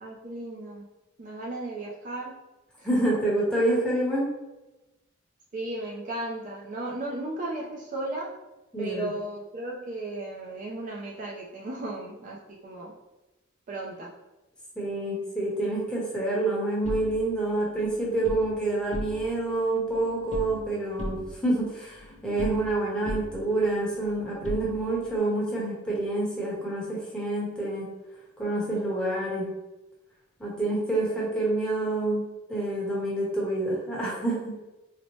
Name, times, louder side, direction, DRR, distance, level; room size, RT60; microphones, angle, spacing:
voice 1, 0.0-0.8 1.2-2.3 2.8-2.9 5.5-8.3 8.8-12.9 13.7-14.1, right 2 dB, 40° right, -3 dB, 0.4 m, -35 dB
voice 2, 2.8-4.3 8.7-9.1 14.8-27.9 28.4-29.5 30.4-34.6, right 2 dB, 5° left, -6 dB, 0.9 m, -27 dB
sound 1, 16.8-18.5 18.8-19.5 19.7-20.7 21.0-22.8 23.1-25.2, left 1 dB, 35° left, 0.6 m, -38 dB
4.1 x 2.1 x 3.0 m, 1.0 s
head